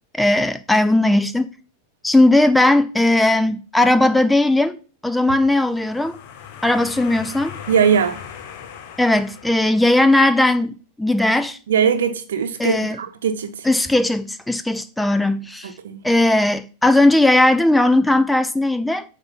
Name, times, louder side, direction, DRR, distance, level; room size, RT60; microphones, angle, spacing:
voice 1, 0.1-1.5 2.0-4.8 5.0-6.2 6.6-7.6 9.0-11.6 12.6-13.0 13.6-15.7 16.0-19.0, left 1 dB, 5° left, 0.4 m, -17 dB
sound 1, 5.5-10.3, left 8 dB, 45° left, 0.8 m, -38 dB
voice 2, 7.7-8.2 11.7-13.6 15.6-16.0, right 7 dB, 60° right, 0.9 m, -20 dB
7.8 x 2.7 x 5.5 m
figure-of-eight pair, 90°, 0 cm